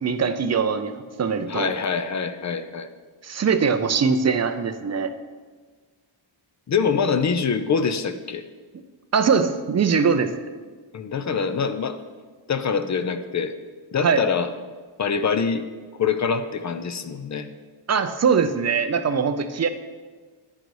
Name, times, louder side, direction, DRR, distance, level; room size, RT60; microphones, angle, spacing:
voice 1, 0.0-1.7 3.2-5.1 9.1-10.3 14.0-14.2 17.9-19.7, right 6 dB, 35° right, 10 dB, 0.4 m, -22 dB
voice 2, 1.5-2.9 6.7-8.5 10.9-12.0 12.5-13.5 13.9-14.5 15.0-15.6 16.0-17.5, left 6 dB, 35° left, 10 dB, 0.4 m, -24 dB
10.5 x 4.0 x 4.7 m, 1.4 s
wide cardioid pair, 115°, 50 cm